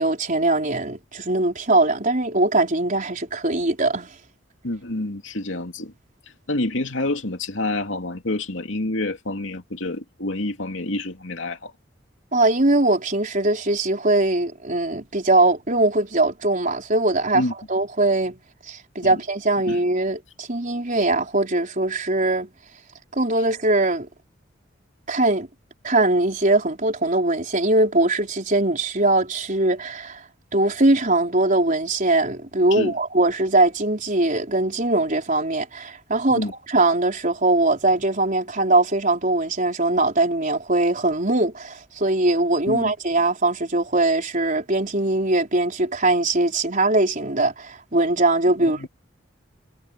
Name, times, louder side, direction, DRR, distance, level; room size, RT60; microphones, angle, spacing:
voice 1, 0.0-4.1 12.3-17.4 17.7-18.4 18.7-22.5 23.1-24.1 25.1-25.5 25.8-30.2 30.5-48.9, right 2 dB, 45° right, 4.6 m, -21 dB
voice 2, 4.6-5.9 6.5-11.7 17.3-17.5 19.0-19.2 19.7-19.8 32.7-33.0 36.3-36.5 42.7-42.9 48.6-48.9, left 2 dB, 75° left, 2.9 m, -28 dB
head